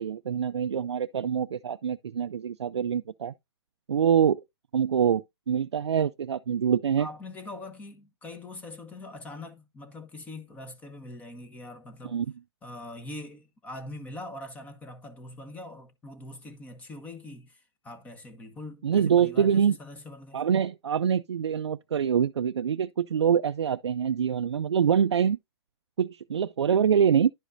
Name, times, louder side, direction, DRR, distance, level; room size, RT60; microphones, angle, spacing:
voice 1, 0.0-3.3 3.9-4.4 4.7-7.1 12.1-12.3 18.8-19.8 20.3-25.4 26.0-27.3, right 8 dB, 90° right, 0.4 m, -25 dB
voice 2, 7.0-12.2 12.6-20.4, left 2 dB, 10° left, 1.1 m, -43 dB
11.0 x 5.0 x 2.6 m
hypercardioid pair, 140°, 14 cm